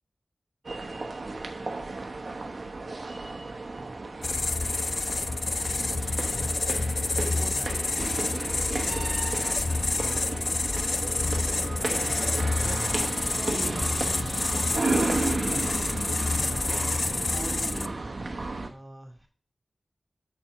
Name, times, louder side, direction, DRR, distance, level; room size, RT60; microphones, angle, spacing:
sound 1, 0.6-18.7, right 3 dB, 60° right, 1.0 m, -33 dB
sound 2, 4.2-17.9, left 3 dB, 60° left, 0.3 m, -28 dB
voice 1, 7.2-8.1 12.6-15.9 16.3-18.1 18.6-19.3, right 1 dB, 35° right, 4 dB, 2.3 m, -45 dB
7.0 x 4.3 x 6.0 m, 0.36 s
cardioid pair, 50°, 0 cm